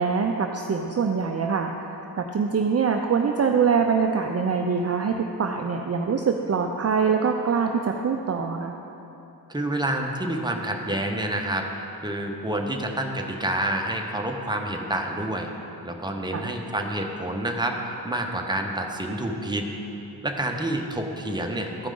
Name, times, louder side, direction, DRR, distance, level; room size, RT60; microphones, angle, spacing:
voice 1, 0.0-8.8 16.3-16.5, right 5 dB, 40° right, 3 dB, 0.5 m, -24 dB
voice 2, 9.5-15.5 15.8-19.7 20.2-21.9, right 1 dB, 10° right, 2 dB, 0.9 m, -28 dB
13.5 x 4.9 x 3.8 m, 3.0 s
cardioid pair, 55°, 41 cm